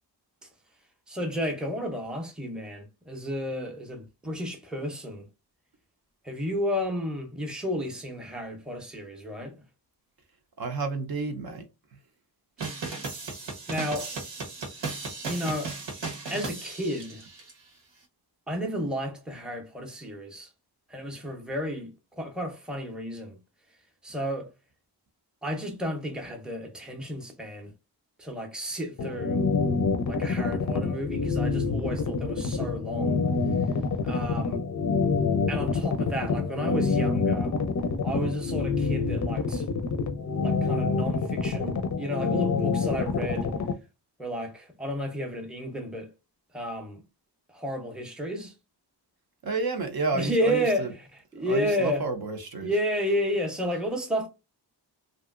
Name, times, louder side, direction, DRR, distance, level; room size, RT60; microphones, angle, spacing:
voice 1, 1.1-5.3 6.2-9.5 13.7-14.1 15.3-15.8 16.3-17.2 18.5-20.5 20.9-21.9 22.2-23.4 24.0-24.5 25.4-27.7 28.2-29.4 30.1-33.2 34.0-34.6 35.5-37.5 38.0-39.7 40.4-43.5 44.2-46.1 46.5-47.0 47.5-48.5 50.1-52.0 52.6-54.3, equal, ahead, 0.6 m, -32 dB
voice 2, 10.6-11.7 49.4-50.9 51.5-52.7, right 3 dB, 55° right, 0.6 m, -30 dB
sound 1, 12.6-17.5, right 4 dB, 90° right, 1.2 m, -36 dB
sound 2, 29.0-43.7, left 4 dB, 45° left, 0.5 m, -26 dB
3.0 x 2.6 x 2.4 m
wide cardioid pair, 160°, 43 cm